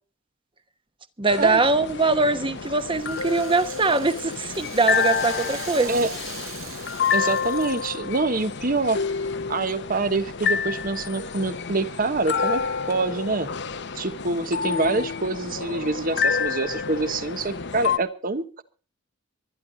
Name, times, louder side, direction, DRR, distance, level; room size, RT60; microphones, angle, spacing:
voice 1, 1.2-5.9, right 3 dB, 25° right, 1.1 m, -22 dB
sound 1, 1.3-18.0, left 6 dB, 55° left, 0.9 m, -29 dB
Rattle (instrument), 2.0-8.2, right 8 dB, 85° right, 5.2 m, -41 dB
voice 2, 7.1-9.0 9.5-12.6 12.9-13.5 13.9-18.6, right 3 dB, 45° right, 1.2 m, -26 dB
24.0 x 11.0 x 4.0 m
head